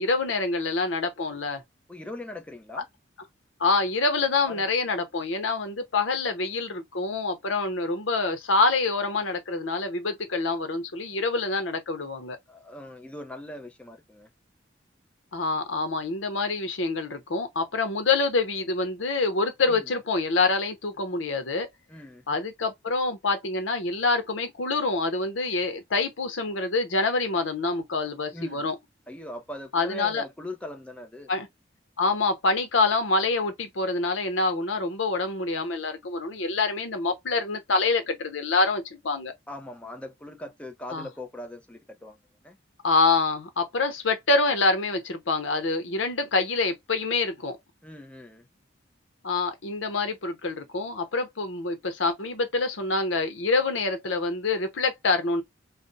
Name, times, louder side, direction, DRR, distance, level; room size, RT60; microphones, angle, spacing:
voice 1, 0.0-1.6 3.6-12.4 15.3-21.7 22.3-28.8 29.7-30.2 31.3-31.5 32.0-39.3 40.9-41.1 42.8-47.6 49.2-55.4, left 3 dB, 85° left, 0.8 m, -26 dB
voice 2, 1.9-2.9 4.5-4.7 12.5-14.3 19.7-19.9 21.9-22.2 28.3-28.7 29.1-31.3 39.5-42.2 42.4-42.6 47.8-48.4, left 1 dB, 5° left, 0.5 m, -40 dB
2.5 x 2.1 x 3.9 m
head